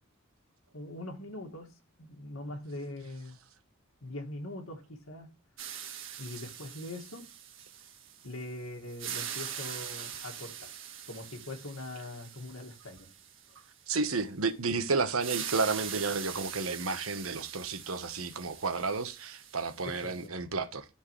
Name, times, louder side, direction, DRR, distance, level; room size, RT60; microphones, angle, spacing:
voice 1, 0.7-3.4 4.0-5.3 6.2-7.3 8.2-10.7 11.1-13.1 19.8-20.3, left 1 dB, 85° left, 2.0 m, -42 dB
sound 1, 5.6-8.5 8.8-13.7 15.2-20.3, right 9 dB, 65° right, 1.6 m, -42 dB
voice 2, 13.9-20.9, right 4 dB, 85° right, 1.3 m, -32 dB
13.0 x 4.7 x 3.2 m
head